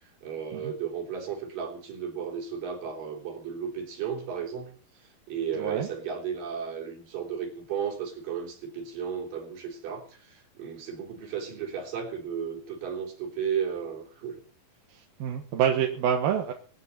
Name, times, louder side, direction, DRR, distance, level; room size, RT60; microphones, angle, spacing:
voice 1, 0.0-14.4, right 7 dB, 70° right, 2 dB, 5.0 m, -34 dB
voice 2, 5.6-5.9 14.9-16.5, right 8 dB, 90° right, 3 dB, 3.3 m, -27 dB
24.5 x 9.6 x 4.3 m, 0.40 s
omnidirectional pair, 4.1 m